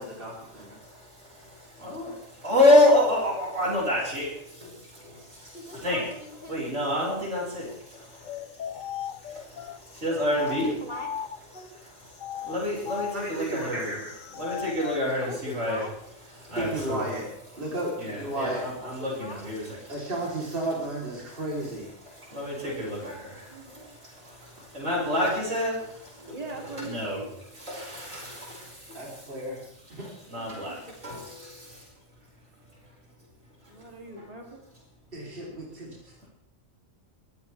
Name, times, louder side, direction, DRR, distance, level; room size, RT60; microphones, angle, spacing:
voice 1, 0.0-0.8 13.1-14.1 16.5-17.3 17.6-18.6 19.9-21.9 28.9-29.6 29.9-30.1 35.1-36.3, right 1 dB, 45° right, -4 dB, 4.1 m, -33 dB
voice 2, 0.8-6.1 6.5-8.4 8.8-10.8 11.6-13.9 14.4-15.8 16.3-17.1 18.0-19.9 22.1-23.3 23.6-26.4 26.8-27.2 27.5-29.0 30.3-31.8 35.2-35.4, left 1 dB, 70° right, -4 dB, 6.0 m, -28 dB
voice 3, 5.5-6.7 10.3-11.1 11.5-11.9 15.2-15.9 18.8-19.4 25.2-25.5 30.4-30.8 31.0-31.2, left 1 dB, 35° left, 2 dB, 2.4 m, -41 dB
sound 1, 8.2-11.6 12.1-15.1, left 9 dB, 80° left, 1.2 m, -37 dB
voice 4, 22.4-24.0 26.2-27.3 33.7-34.6, right 3 dB, 30° right, 0 dB, 3.2 m, -42 dB
24.0 x 15.5 x 3.5 m, 0.72 s
omnidirectional pair, 1.3 m